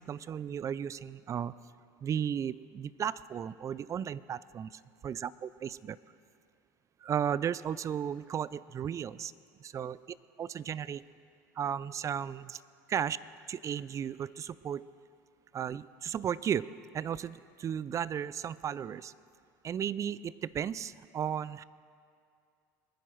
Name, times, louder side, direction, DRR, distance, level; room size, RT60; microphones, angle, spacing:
voice 1, 0.0-1.5 2.0-6.0 7.0-9.3 9.6-10.0 10.4-11.1 11.6-12.6 12.9-13.2 13.5-14.9 15.5-16.7 16.9-19.1 19.6-21.6, right 8 dB, 30° right, 19 dB, 0.4 m, -35 dB
22.5 x 10.0 x 4.6 m, 2.3 s
hypercardioid pair, 90°, 10 cm